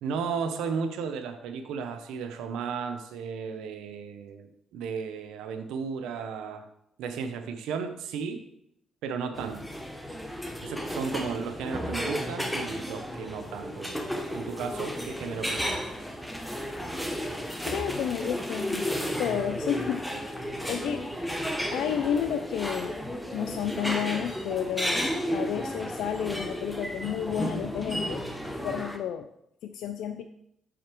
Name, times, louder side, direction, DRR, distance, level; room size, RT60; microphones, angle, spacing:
voice 1, 0.0-6.7 7.0-8.4 9.0-9.6 10.6-15.9, right 6 dB, 90° right, 7 dB, 0.6 m, -34 dB
sound 1, 9.3-29.0, equal, 5° left, 0.9 m, -33 dB
voice 2, 17.7-18.9 19.2-20.2 20.7-21.1 21.7-23.0 23.3-28.2 28.6-29.3 29.6-30.2, left 9 dB, 80° left, 7 dB, 0.3 m, -31 dB
6.7 x 5.0 x 4.4 m, 0.77 s
cardioid pair, 90°, 0 cm